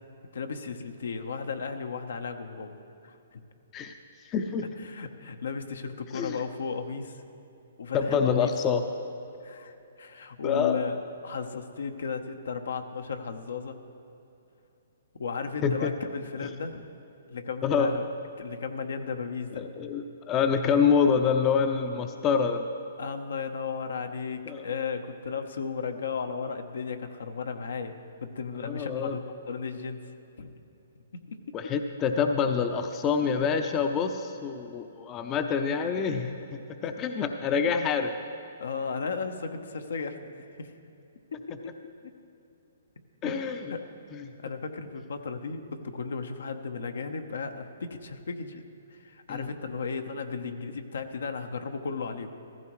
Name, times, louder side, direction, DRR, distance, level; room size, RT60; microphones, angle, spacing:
voice 1, 0.3-2.8 3.0-3.4 4.8-7.2 7.8-8.5 9.4-11.0 11.2-13.8 15.2-16.8 17.3-18.0 18.4-19.7 23.0-29.2 29.5-30.0 30.4-30.5 31.1-31.4 38.6-40.7 41.3-41.7 43.2-43.4 43.7-43.8 44.4-48.6 48.9-52.3, left 5 dB, 75° left, 6 dB, 0.9 m, -35 dB
voice 2, 4.2-4.8 6.1-6.4 7.9-8.8 10.4-10.8 15.6-15.9 17.6-18.0 19.5-22.7 24.5-24.7 28.6-29.2 31.5-38.1 43.2-43.7 44.1-44.3 49.3-49.5, left 6 dB, 25° left, 6 dB, 0.6 m, -26 dB
15.0 x 14.5 x 3.1 m, 2.8 s
hypercardioid pair, 135°, 0 cm